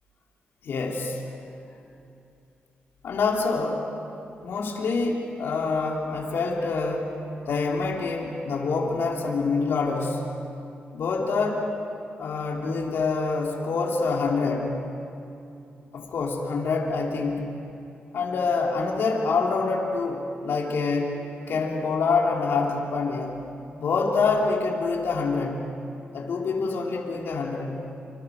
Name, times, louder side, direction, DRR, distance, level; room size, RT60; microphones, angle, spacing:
voice 1, 0.6-1.2 3.0-3.9 4.4-7.1 7.5-10.3 10.9-11.7 12.2-14.8 15.9-17.5 18.1-21.2 21.5-23.4 23.8-25.7 26.1-27.8, left 4 dB, 80° left, 0 dB, 3.4 m, -26 dB
27.5 x 26.5 x 6.7 m, 2.7 s
cardioid pair, 75°, 4 cm